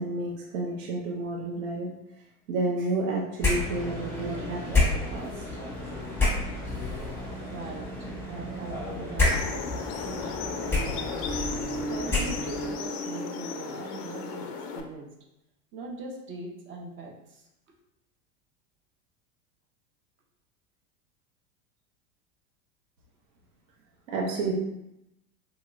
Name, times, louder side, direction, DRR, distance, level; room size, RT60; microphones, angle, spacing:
voice 1, 0.0-1.9 2.5-5.3 24.1-24.5, right 2 dB, 65° right, -2 dB, 0.7 m, -30 dB
sound 1, 3.4-12.8, left 2 dB, 5° left, 0.9 m, -30 dB
voice 2, 7.4-7.9 8.3-11.2 11.9-15.1 15.7-17.4, right 3 dB, 30° right, 0 dB, 0.6 m, -41 dB
sound 2, 9.3-14.8, left 3 dB, 40° left, 0.4 m, -34 dB
3.0 x 2.8 x 2.3 m, 0.85 s
hypercardioid pair, 95°, 43 cm